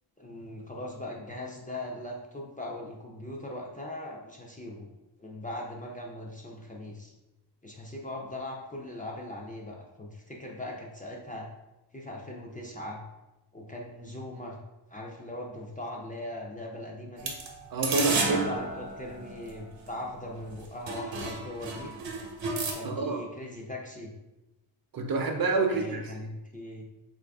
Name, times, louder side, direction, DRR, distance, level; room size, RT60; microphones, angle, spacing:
voice 1, 0.2-4.9 5.2-7.1 7.6-11.5 11.9-13.0 13.5-14.6 14.9-17.3 18.2-21.9 22.7-24.1 25.7-26.8, left 1 dB, 20° left, -2 dB, 0.3 m, -40 dB
sound 1, 17.2-19.9 20.5-20.6 20.9-22.7, right 3 dB, 80° right, 0.8 m, -32 dB
voice 2, 17.7-18.5 22.8-23.2 24.9-26.1, right 3 dB, 55° right, 3 dB, 0.5 m, -27 dB
3.9 x 2.5 x 3.3 m, 0.99 s
wide cardioid pair, 170°, 44 cm